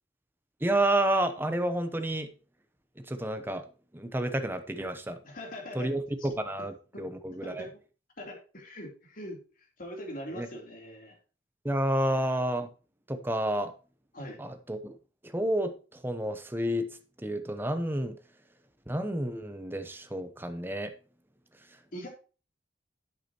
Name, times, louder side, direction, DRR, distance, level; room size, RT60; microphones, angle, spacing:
voice 1, 0.6-2.3 3.1-3.6 3.9-5.2 5.7-7.7 10.3-10.5 11.6-12.7 13.1-13.7 14.4-14.9 15.2-15.7 16.0-18.1 18.9-20.9, right 1 dB, 10° right, 8 dB, 0.8 m, -30 dB
voice 2, 5.2-6.3 6.9-7.0 7.4-7.8 8.2-11.1 14.1-14.4 21.9-22.1, left 1 dB, 50° left, 0 dB, 3.5 m, -42 dB
11.0 x 8.2 x 3.0 m, 0.35 s
head